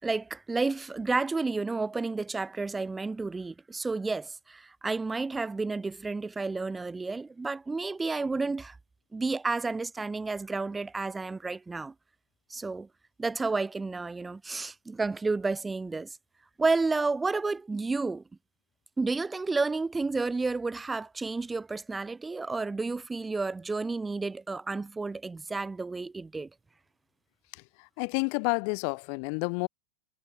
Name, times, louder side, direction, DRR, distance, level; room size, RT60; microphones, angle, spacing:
voice 1, 0.0-8.8 9.1-11.9 12.5-12.9 13.2-16.2 16.6-18.2 19.0-26.5, right 3 dB, 10° right, 5.7 m, -31 dB
voice 2, 27.5-29.7, left 40 dB or more, 45° left, 2.9 m, -30 dB
figure-of-eight pair, 90°, 0 cm